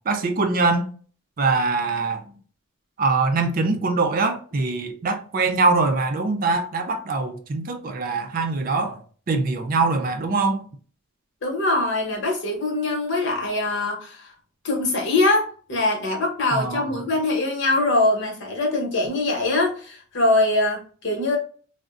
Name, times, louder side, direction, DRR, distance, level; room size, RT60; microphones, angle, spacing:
voice 1, 0.1-0.9 1.4-2.2 3.0-9.0 9.3-10.6 16.5-16.9, right 3 dB, 40° right, 0.4 m, -23 dB
voice 2, 11.4-14.3 14.6-21.4, left 2 dB, 55° left, 0.9 m, -23 dB
3.5 x 2.1 x 2.4 m
head